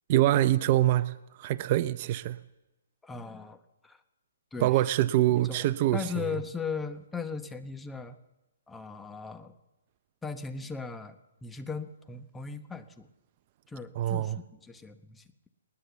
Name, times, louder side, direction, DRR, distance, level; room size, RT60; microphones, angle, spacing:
voice 1, 0.1-2.4 4.6-6.4 13.9-14.4, right 14 dB, 40° right, 0.6 m, -25 dB
voice 2, 3.0-4.0 4.5-4.7 5.5-5.6 5.9-8.2 8.7-9.5 10.2-13.1 13.7-14.3 14.7-15.5, left 5 dB, 5° left, 1.1 m, -38 dB
20.0 x 19.5 x 7.1 m
hypercardioid pair, 145°, 0 cm